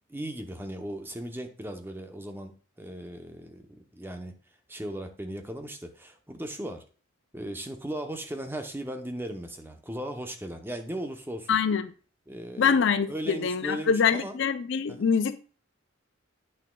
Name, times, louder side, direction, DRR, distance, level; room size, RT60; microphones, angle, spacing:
voice 1, 0.1-2.5 2.8-4.3 4.7-6.9 7.3-11.6 12.3-14.4 14.9-15.1, right 1 dB, 10° right, 0.7 m, -37 dB
voice 2, 11.5-11.9 12.6-15.4, left 6 dB, 60° left, 0.5 m, -24 dB
9.1 x 6.1 x 2.3 m
head